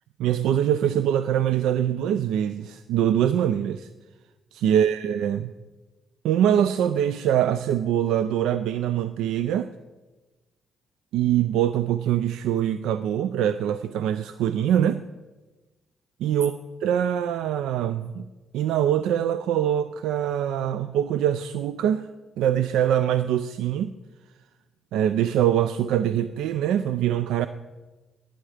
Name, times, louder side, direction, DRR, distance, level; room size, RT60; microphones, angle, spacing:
voice 1, 0.2-3.9 4.5-5.5 6.2-9.7 11.1-15.0 16.2-16.5 16.8-18.3 18.5-22.1 22.4-23.9 24.9-27.5, right 10 dB, 90° right, 12 dB, 0.4 m, -23 dB
18.0 x 9.1 x 5.0 m, 1.2 s
cardioid pair, 90°, 0 cm